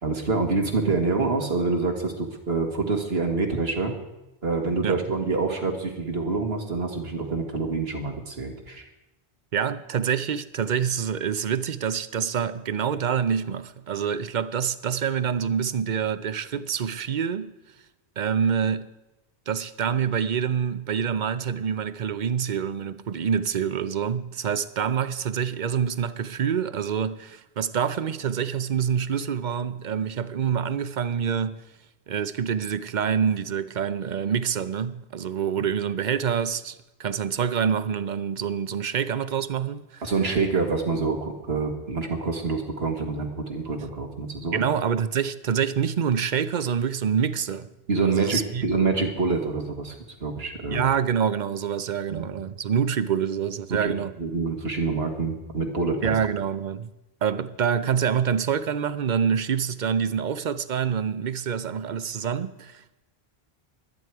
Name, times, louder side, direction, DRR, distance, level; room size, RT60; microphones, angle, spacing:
voice 1, 0.0-4.0 4.4-8.9 40.0-44.6 47.9-49.9 50.2-50.8 52.1-52.3 53.7-56.1, right 4 dB, 75° right, 2.0 m, -26 dB
voice 2, 9.5-17.5 18.2-18.9 19.5-31.6 32.1-40.1 44.5-47.7 48.1-48.6 50.7-54.1 56.0-56.9 57.2-63.0, right 7 dB, 50° right, 0.7 m, -26 dB
23.0 x 9.2 x 4.7 m
omnidirectional pair, 1.0 m